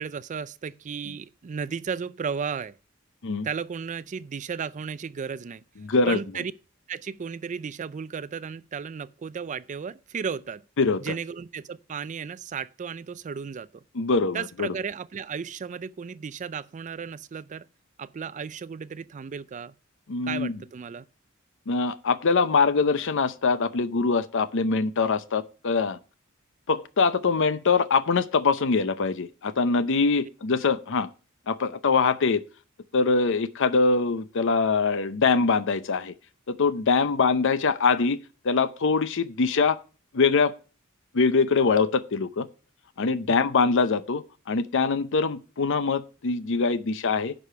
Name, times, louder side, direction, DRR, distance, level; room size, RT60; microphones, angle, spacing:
voice 1, 0.0-2.8 3.4-5.6 6.1-6.5 6.9-10.6 11.0-13.8 14.3-17.6 18.0-19.7 20.2-21.0 43.3-43.4, right 6 dB, 35° right, 0.4 m, -34 dB
voice 2, 5.8-6.2 10.8-11.1 13.9-14.7 20.1-20.5 21.7-26.0 26.7-31.1 31.5-32.4 32.9-36.1 36.5-38.2 38.4-39.8 40.1-40.5 41.1-42.5 43.0-47.3, left 4 dB, 65° left, 0.6 m, -23 dB
10.5 x 5.0 x 6.7 m
head